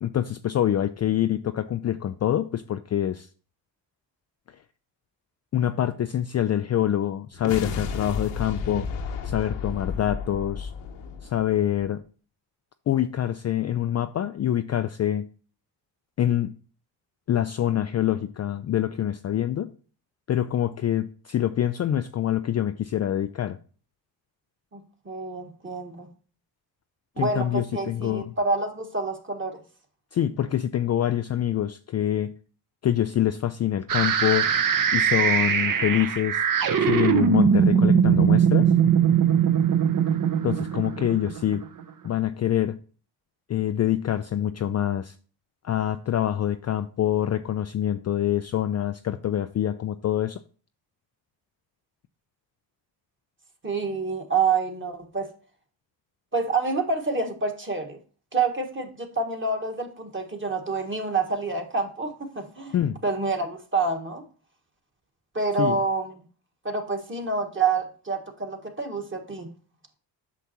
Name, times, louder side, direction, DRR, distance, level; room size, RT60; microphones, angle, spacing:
voice 1, 0.0-3.3 5.5-8.9 9.2-10.7 11.2-12.0 12.9-15.3 16.2-16.5 17.3-19.7 20.3-23.6 27.2-28.3 30.1-32.3 32.8-34.6 34.9-36.5 36.8-38.7 40.4-41.7 42.0-42.8 43.5-45.1 45.6-50.4 62.7-63.0 65.6-65.8, left 11 dB, 35° left, 0.4 m, -25 dB
sound 1, 7.3-11.8, left 5 dB, 80° left, 1.1 m, -32 dB
voice 2, 24.7-26.1 27.2-29.6 53.6-55.3 56.3-58.0 58.3-62.8 63.0-64.2 65.4-66.1 66.7-69.5, right 4 dB, 25° right, 1.6 m, -27 dB
sound 2, 33.9-41.8, right 7 dB, 40° right, 0.9 m, -21 dB
8.2 x 5.9 x 2.9 m
supercardioid pair, 55°, 49 cm